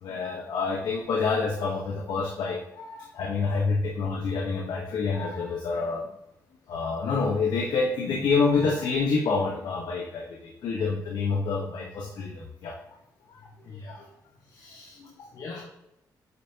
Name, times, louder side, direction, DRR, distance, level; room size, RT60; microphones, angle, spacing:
voice 1, 0.0-6.0 6.7-12.7 13.3-13.4 13.9-14.0 15.0-15.3, left 4 dB, 75° left, -1 dB, 1.2 m, -27 dB
voice 2, 13.4-14.1 14.4-15.6, left 4 dB, 55° left, -5 dB, 1.6 m, -44 dB
8.4 x 5.6 x 2.9 m, 0.84 s
cardioid pair, 110°, 7 cm